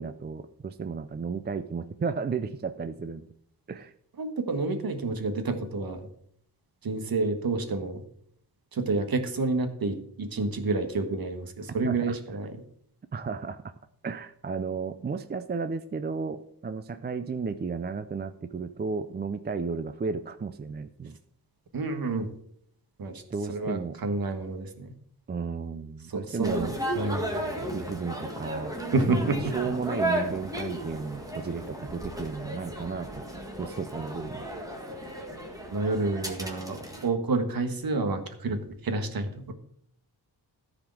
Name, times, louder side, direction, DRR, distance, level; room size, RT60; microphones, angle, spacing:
voice 1, 0.0-3.3 3.7-3.9 11.8-12.2 13.1-13.6 14.0-21.2 23.3-24.0 25.3-26.7 27.6-28.7 29.0-33.2 33.6-34.5, right 5 dB, 25° right, 10 dB, 0.4 m, -33 dB
voice 2, 4.2-6.1 6.8-8.0 8.7-12.6 21.7-22.3 23.0-23.2 23.5-24.9 26.1-26.7 27.0-27.4 28.9-29.5 35.7-38.6 38.8-39.5, right 3 dB, 60° right, 7 dB, 1.6 m, -29 dB
sound 1, 26.4-37.1, right 1 dB, 10° right, 1.8 m, -34 dB
14.0 x 5.0 x 7.6 m, 0.67 s
wide cardioid pair, 175°, 41 cm